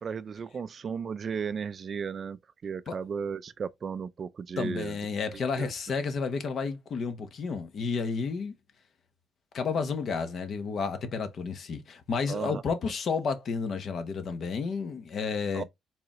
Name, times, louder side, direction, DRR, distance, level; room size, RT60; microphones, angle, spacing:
voice 1, 0.0-2.4 2.6-4.9 5.6-5.7 12.3-12.6 15.5-15.6, right 6 dB, 35° right, 0.4 m, -34 dB
voice 2, 4.6-8.5 9.5-15.6, left 5 dB, 45° left, 1.0 m, -31 dB
4.8 x 3.6 x 3.0 m
cardioid pair, 150°, 0 cm